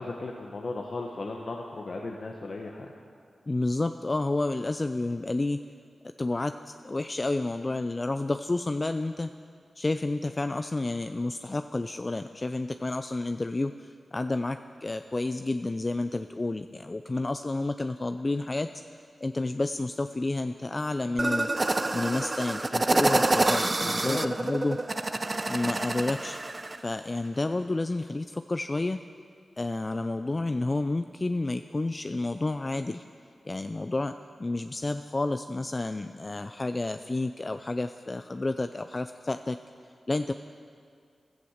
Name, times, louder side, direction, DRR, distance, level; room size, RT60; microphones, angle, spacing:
voice 1, 0.0-2.9 23.8-24.3, left 3 dB, 65° left, 1 dB, 1.3 m, -36 dB
voice 2, 3.5-5.6 6.0-9.3 9.8-21.5 21.9-24.8 25.5-26.4 26.8-29.0 29.6-33.0 33.4-34.1 34.4-39.6 40.1-40.3, left 2 dB, 35° left, 9 dB, 0.5 m, -30 dB
sound 1, 21.2-26.8, right 2 dB, 35° right, 0.7 m, -27 dB
16.0 x 12.0 x 6.5 m, 2.2 s
cardioid pair, 45°, 0 cm